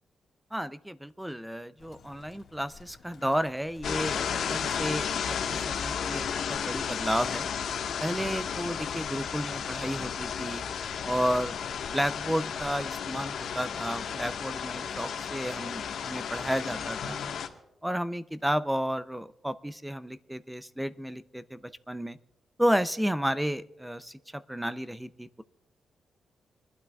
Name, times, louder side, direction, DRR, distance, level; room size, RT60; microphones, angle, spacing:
voice 1, 0.5-7.5 8.0-10.7 11.1-11.6 11.9-17.2 17.8-22.2 22.6-25.4, equal, 5° right, 13 dB, 0.4 m, -32 dB
Bird, 1.8-11.9, left 5 dB, 60° left, 1.7 m, -52 dB
sound 1, 3.8-17.5, left 7 dB, 85° left, 1.3 m, -33 dB
26.0 x 12.0 x 2.3 m, 0.96 s
wide cardioid pair, 160°, 0 cm